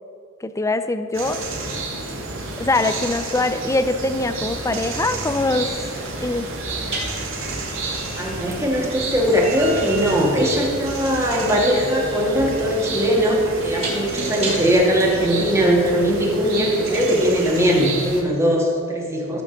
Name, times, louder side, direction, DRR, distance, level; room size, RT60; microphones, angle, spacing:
voice 1, 0.4-1.4 2.6-5.7 6.2-6.5 14.2-14.5, left 2 dB, 15° left, 10 dB, 0.5 m, -23 dB
sound 1, 1.1-18.2, right 2 dB, 65° right, 2.2 m, -29 dB
sound 2, 6.9-14.9, right 3 dB, 30° right, 3.6 m, -34 dB
voice 2, 8.2-19.4, equal, 15° right, -2 dB, 2.1 m, -20 dB
13.5 x 6.1 x 7.4 m, 2.1 s
head